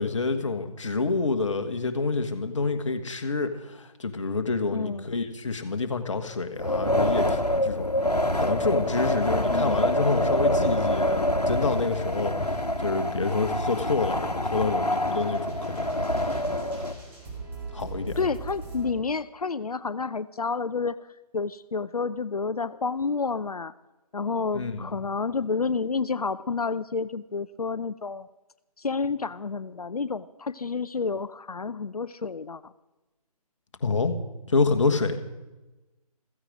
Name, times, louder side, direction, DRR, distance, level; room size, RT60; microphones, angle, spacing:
voice 1, 0.0-7.9 8.4-16.0 17.7-18.2 24.5-24.9 33.8-34.1 34.5-35.2, left 4 dB, 50° left, 8 dB, 1.6 m, -28 dB
voice 2, 4.7-5.1 9.5-9.9 18.2-21.0 21.3-23.7 24.1-28.3 28.8-32.7, left 4 dB, 70° left, 16 dB, 0.6 m, -30 dB
Wind, 6.5-16.9, left 1 dB, 90° left, 1.3 m, -26 dB
sound 1, 13.9-18.9, right 3 dB, 10° right, 3.4 m, -41 dB
15.5 x 15.0 x 5.1 m, 1.1 s
figure-of-eight pair, 145°, 20 cm